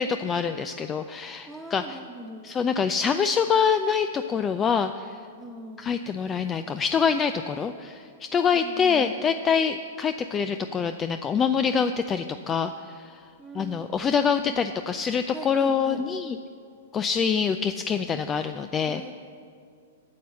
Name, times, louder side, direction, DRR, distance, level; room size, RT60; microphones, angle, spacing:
voice 1, 0.0-2.0 2.4-5.2 5.8-13.2 13.5-16.4 16.9-19.0, left 6 dB, 20° left, 9 dB, 0.3 m, -25 dB
voice 2, 1.5-2.5 5.4-6.0 8.3-9.4 13.4-14.6 15.3-16.1 18.9-19.1, right 1 dB, 5° right, 3 dB, 1.1 m, -42 dB
9.4 x 6.8 x 7.5 m, 2.3 s
figure-of-eight pair, 110°, 0 cm